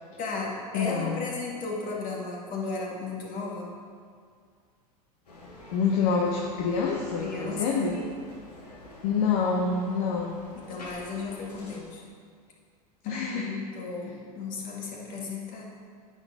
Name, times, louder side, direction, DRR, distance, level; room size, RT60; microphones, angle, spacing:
voice 1, 0.2-3.7 7.2-8.1 10.7-12.0 13.0-15.6, left 3 dB, 45° left, -2 dB, 2.4 m, -35 dB
voice 2, 0.7-1.3 5.7-8.0 9.0-10.4 13.0-13.5, left 5 dB, 60° left, -1 dB, 1.1 m, -27 dB
Bicycle, 5.3-11.8, left 1 dB, 85° left, 1.9 m, -46 dB
9.6 x 7.0 x 5.0 m, 2.1 s
hypercardioid pair, 80°, 20 cm